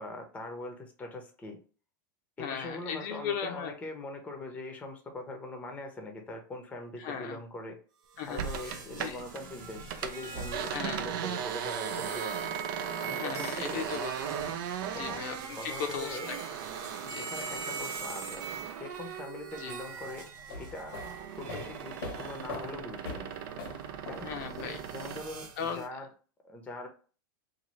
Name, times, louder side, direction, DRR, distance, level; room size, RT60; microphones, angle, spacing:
voice 1, 0.0-1.6 2.4-7.8 8.2-12.4 13.0-13.9 14.9-15.2 15.5-16.3 17.2-21.0 21.3-23.3 24.1-24.3 24.9-26.1 26.4-26.9, left 2 dB, 10° left, 3 dB, 0.7 m, -42 dB
voice 2, 2.4-3.7 7.0-7.4 8.2-9.2 10.7-11.0 13.1-14.3 14.9-16.4 17.0-17.3 19.6-19.7 24.2-24.8 25.6-25.8, left 7 dB, 55° left, 4 dB, 0.6 m, -37 dB
sound 1, 8.1-22.6 23.2-25.9, right 5 dB, 55° right, 0.9 m, -43 dB
sound 2, 8.4-9.4 9.7-20.1 20.4-25.3, right 8 dB, 70° right, 0.4 m, -38 dB
sound 3, 20.3-25.2, left 4 dB, 85° left, 1.0 m, -43 dB
2.7 x 2.6 x 3.0 m, 0.37 s
supercardioid pair, 140°, 12 cm